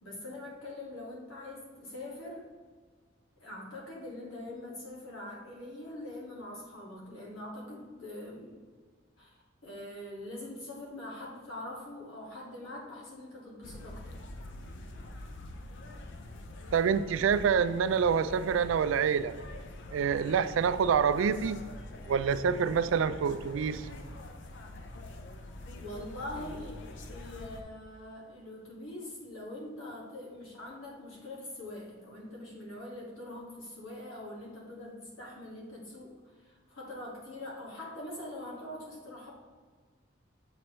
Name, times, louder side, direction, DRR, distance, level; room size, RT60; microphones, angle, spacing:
voice 1, 0.0-2.5 3.4-8.6 9.2-14.2 25.8-36.1 36.4-39.3, left 1 dB, 85° left, -3 dB, 1.8 m, -43 dB
sound 1, 13.6-27.6, left 1 dB, 65° left, 0.6 m, -45 dB
voice 2, 16.7-19.3 19.9-21.6 22.1-23.9, right 6 dB, 70° right, 13 dB, 0.3 m, -27 dB
7.2 x 4.6 x 3.1 m, 1.5 s
head